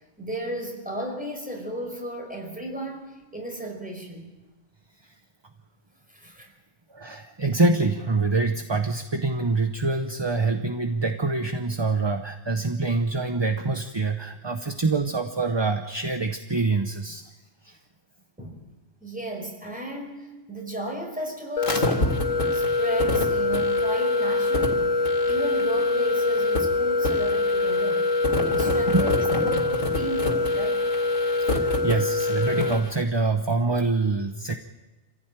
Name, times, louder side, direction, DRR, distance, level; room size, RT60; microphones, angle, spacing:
voice 1, 0.2-4.3 6.1-6.5 18.4-18.6 19.0-28.1 28.4-30.9, right 1 dB, 5° right, 1 dB, 5.2 m, -35 dB
voice 2, 6.9-17.2 17.6-17.8 28.7-29.1 31.5-34.6, right 3 dB, 25° right, 6 dB, 0.9 m, -25 dB
sound 1, 21.6-32.9, left 2 dB, 85° left, 3.1 m, -23 dB
27.0 x 16.0 x 9.0 m, 1.1 s
omnidirectional pair, 1.3 m